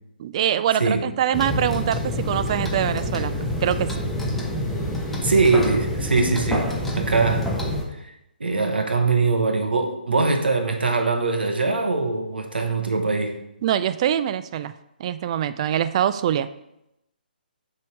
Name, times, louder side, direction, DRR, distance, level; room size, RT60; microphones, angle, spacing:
voice 1, 0.2-3.9 13.6-14.7 15.0-16.5, right 10 dB, 35° right, 13 dB, 0.3 m, -24 dB
sound 1, 1.3-7.8, left 1 dB, 5° left, 0.8 m, -27 dB
voice 2, 5.2-7.5 8.4-13.4, right 3 dB, 80° right, 5 dB, 1.1 m, -22 dB
6.6 x 3.6 x 4.6 m, 0.84 s
figure-of-eight pair, 140°, 5 cm